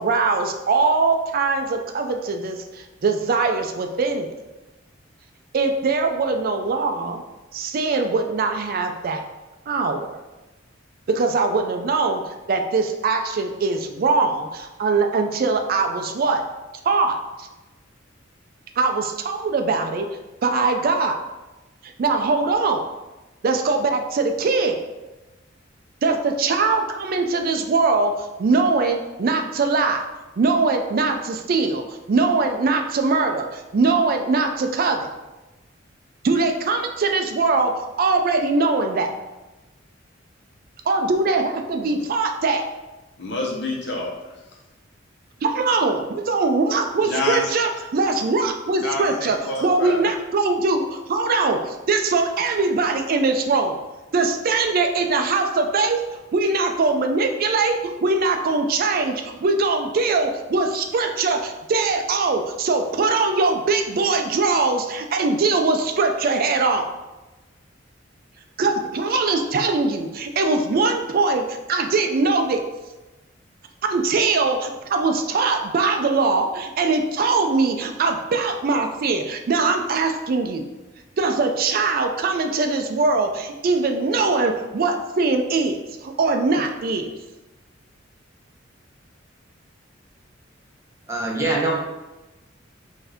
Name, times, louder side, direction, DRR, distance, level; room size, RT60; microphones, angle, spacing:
voice 1, 0.0-4.3 5.5-7.2 7.5-9.2 9.7-10.2 11.1-16.4 16.9-17.5 18.8-20.1 20.4-21.2 21.8-22.8 23.4-24.8 26.0-30.1 30.4-35.1 36.2-39.1 40.9-42.6 45.4-53.8 54.1-56.0 56.3-66.9 68.6-72.6 73.8-80.7 81.2-87.1, right 3 dB, 50° right, 5 dB, 0.4 m, -22 dB
voice 2, 43.2-44.4 47.0-47.5 48.8-50.0, left 2 dB, 60° left, -1 dB, 0.9 m, -27 dB
voice 3, 91.1-91.7, right 2 dB, 15° right, -3 dB, 0.9 m, -23 dB
5.6 x 2.7 x 3.4 m, 1.1 s
head